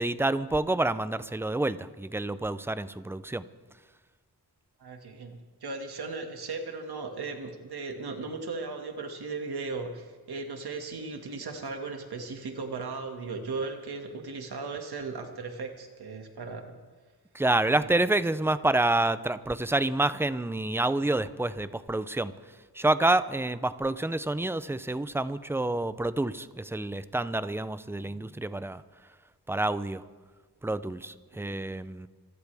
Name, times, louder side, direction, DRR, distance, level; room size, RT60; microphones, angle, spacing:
voice 1, 0.0-3.4 17.3-28.8 29.5-30.0 30.6-32.1, right 2 dB, 5° right, 14 dB, 0.4 m, -28 dB
voice 2, 4.8-16.7 17.7-17.9 31.3-31.5, right 4 dB, 70° right, 4 dB, 2.0 m, -37 dB
26.5 x 15.5 x 3.4 m, 1.4 s
wide cardioid pair, 160°, 40 cm